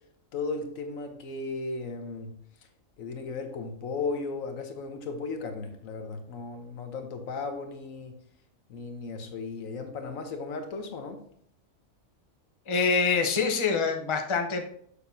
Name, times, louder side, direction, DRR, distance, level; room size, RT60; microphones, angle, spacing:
voice 1, 0.3-2.3 3.0-8.2 8.7-11.2, left 4 dB, 90° left, 5 dB, 1.4 m, -35 dB
voice 2, 12.7-14.7, left 5 dB, 30° left, 3 dB, 0.7 m, -25 dB
6.9 x 6.6 x 2.7 m, 0.65 s
omnidirectional pair, 1.4 m